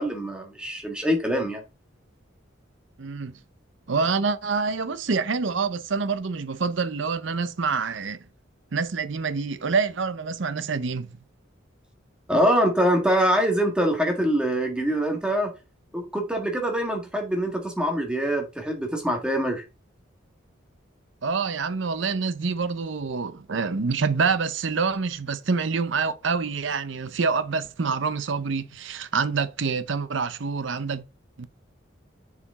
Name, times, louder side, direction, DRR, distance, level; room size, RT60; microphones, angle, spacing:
voice 1, 0.0-1.6 12.3-15.5 15.9-19.6, equal, 5° right, 1.6 m, -24 dB
voice 2, 3.0-3.4 3.9-8.2 8.7-11.1 21.2-31.0 31.4-31.5, right 5 dB, 70° right, 0.6 m, -26 dB
6.9 x 5.0 x 3.6 m
head